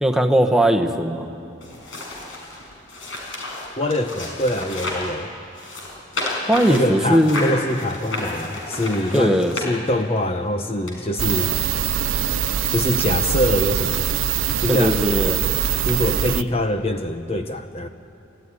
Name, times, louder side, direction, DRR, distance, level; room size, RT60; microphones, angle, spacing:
voice 1, 0.0-1.3 6.5-7.5 9.1-9.5 14.7-15.4, right 1 dB, 5° right, 4 dB, 1.1 m, -19 dB
sound 1, 1.6-5.1 5.5-10.2 10.9-11.0, left 2 dB, 80° left, 5.5 m, -31 dB
voice 2, 3.8-5.3 6.7-11.5 12.7-14.1 14.6-15.3 15.8-17.9, left 1 dB, 30° left, 7 dB, 0.8 m, -24 dB
sound 2, 11.2-16.4, right 9 dB, 90° right, 0.6 m, -23 dB
30.0 x 14.0 x 9.9 m, 2.6 s
head